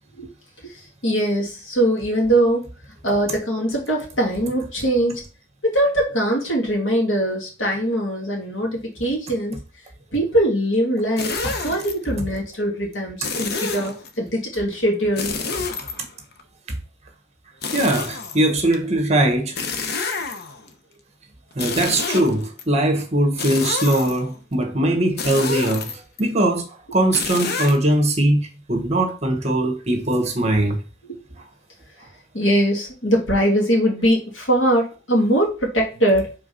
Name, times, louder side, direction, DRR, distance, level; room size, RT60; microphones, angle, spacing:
voice 1, 1.0-2.7 3.0-5.2 5.6-9.6 10.1-15.4 31.1-31.2 32.3-36.3, right 1 dB, 80° left, 2.5 m, -21 dB
sound 1, 11.2-11.9 13.2-14.1 15.2-16.4 17.6-18.8 19.6-20.7 21.5-22.6 23.4-24.4 25.2-26.2 27.1-27.8, left 4 dB, 55° left, 0.8 m, -28 dB
voice 2, 17.7-19.6 21.5-30.8 31.4-31.5, right 1 dB, 35° right, 1.4 m, -21 dB
4.9 x 3.8 x 5.5 m
head